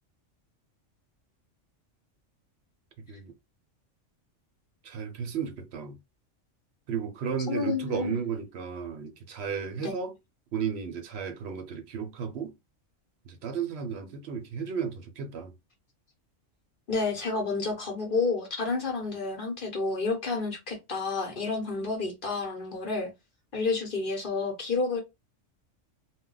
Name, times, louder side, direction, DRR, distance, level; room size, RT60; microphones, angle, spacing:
voice 1, 4.8-6.0 6.9-10.1 10.5-12.5 13.3-15.5, right 6 dB, 65° right, 0.8 m, -34 dB
voice 2, 7.5-8.2 9.8-9.9 16.9-23.1 23.5-25.0, left 3 dB, 50° left, 0.8 m, -30 dB
2.3 x 2.1 x 3.7 m
omnidirectional pair, 1.3 m